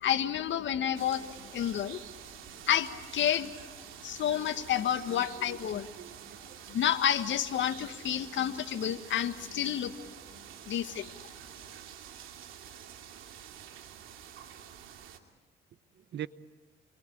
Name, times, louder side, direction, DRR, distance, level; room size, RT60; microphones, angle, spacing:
voice 1, 0.0-2.0 2.7-3.5 4.0-5.9 6.7-10.1 10.7-11.1, left 10 dB, 70° left, 10 dB, 1.6 m, -30 dB
sound 1, 0.9-15.2, right 9 dB, 90° right, 2.7 m, -48 dB
voice 2, 5.1-6.6 16.1-16.3, right 11 dB, 60° right, 15 dB, 1.0 m, -44 dB
29.0 x 23.0 x 8.8 m, 1.2 s
cardioid pair, 90°, 20 cm